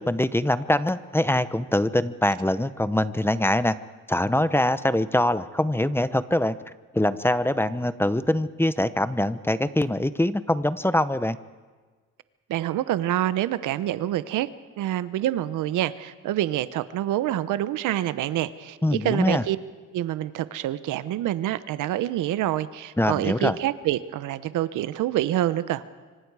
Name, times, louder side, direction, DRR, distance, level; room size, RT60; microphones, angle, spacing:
voice 1, 0.0-3.7 4.1-6.5 6.9-11.4 18.8-19.4 23.0-23.6, left 1 dB, 10° left, 14 dB, 0.8 m, -23 dB
voice 2, 12.5-14.5 14.8-19.6 19.9-25.8, right 13 dB, 85° right, 14 dB, 0.9 m, -26 dB
25.5 x 25.0 x 4.9 m, 1.4 s
cardioid pair, 90°, 30 cm